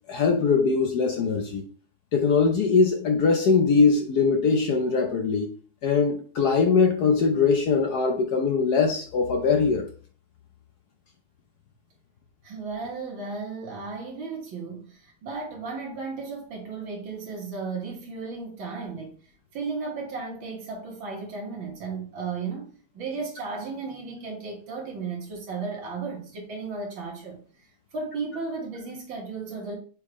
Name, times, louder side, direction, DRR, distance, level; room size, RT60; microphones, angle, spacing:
voice 1, 0.1-1.6 2.1-5.5 5.8-9.9, left 5 dB, 60° left, 1.1 m, -21 dB
voice 2, 12.4-19.2 19.5-27.4 27.9-29.8, right 4 dB, 65° right, 2.4 m, -34 dB
7.0 x 4.7 x 3.1 m
omnidirectional pair, 2.3 m